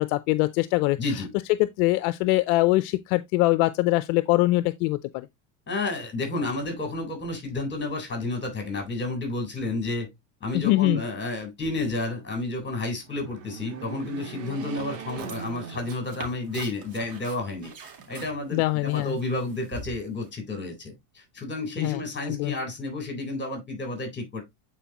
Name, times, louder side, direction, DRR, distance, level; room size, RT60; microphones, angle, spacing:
voice 1, 0.0-1.0 1.6-5.3 10.5-11.0 18.5-19.2 21.8-22.5, left 19 dB, 65° left, 0.6 m, -23 dB
voice 2, 1.0-1.3 5.7-10.1 10.4-17.7 18.1-24.4, left 2 dB, 25° left, 3.9 m, -31 dB
sound 1, 12.9-16.5 17.0-17.1 18.2-19.0, right 6 dB, 75° right, 2.4 m, -41 dB
sound 2, 15.0-20.3, right 3 dB, 45° right, 2.4 m, -44 dB
9.0 x 4.6 x 2.9 m
supercardioid pair, 100°, 47 cm